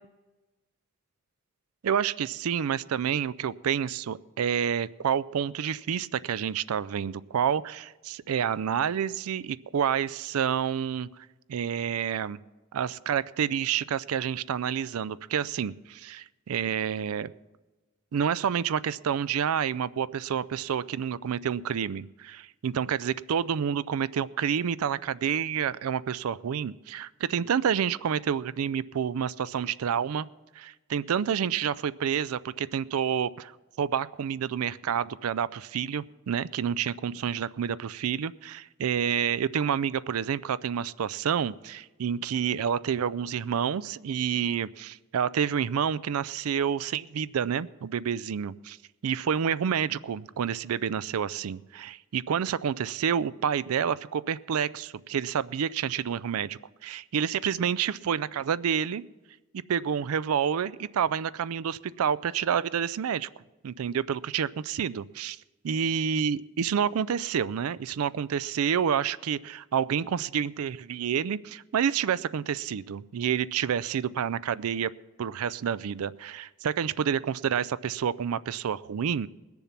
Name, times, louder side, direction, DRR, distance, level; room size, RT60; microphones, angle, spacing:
voice 1, 1.8-11.1 11.5-12.4 12.7-17.3 18.1-30.3 30.6-48.8 49.0-59.0 59.5-63.3 63.6-65.4 65.6-74.9 75.2-79.3, right 8 dB, 85° right, 18 dB, 0.4 m, -29 dB
20.5 x 7.1 x 5.8 m, 1.2 s
head